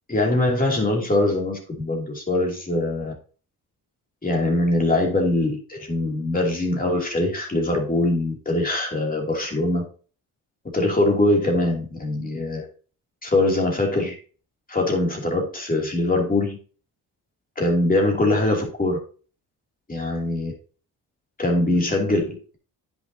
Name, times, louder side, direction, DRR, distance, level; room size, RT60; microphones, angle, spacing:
voice 1, 0.1-3.1 4.2-9.8 10.7-12.6 13.2-14.1 14.7-16.6 17.6-19.0 19.9-20.5 21.4-22.6, left 2 dB, 20° left, 0 dB, 2.9 m, -22 dB
9.8 x 6.3 x 2.9 m, 0.38 s
cardioid pair, 95°, 38 cm